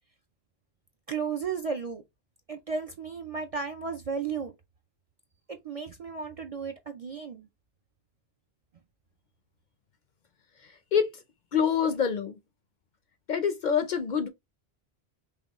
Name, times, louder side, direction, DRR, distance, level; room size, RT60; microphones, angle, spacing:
voice 1, 1.1-2.0 2.5-4.5 5.6-7.5, right 5 dB, 50° right, 0.4 m, -34 dB
voice 2, 11.5-12.4 13.3-14.3, left 7 dB, 55° left, 0.6 m, -25 dB
5.6 x 2.3 x 2.9 m
omnidirectional pair, 1.1 m